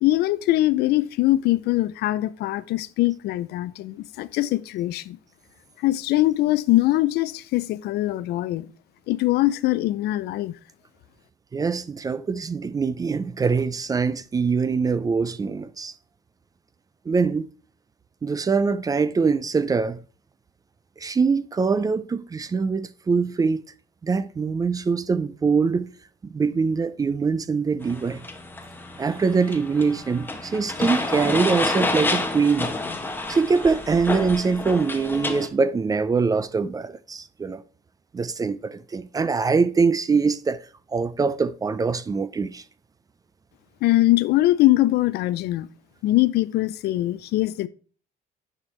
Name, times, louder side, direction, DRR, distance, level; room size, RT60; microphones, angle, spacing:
voice 1, 0.0-5.2 5.8-8.7 9.1-10.5 43.8-45.7 46.0-47.7, left 16 dB, 75° left, 0.4 m, -22 dB
voice 2, 11.5-15.9 17.1-17.5 18.2-20.0 21.0-23.6 24.0-25.9 26.2-28.2 29.0-32.7 33.3-37.6 38.1-40.6 40.9-42.6, right 5 dB, 20° right, 0.4 m, -23 dB
sound 1, 27.8-35.5, left 2 dB, 10° left, 0.9 m, -29 dB
9.8 x 4.4 x 3.1 m
cardioid pair, 110°, 17 cm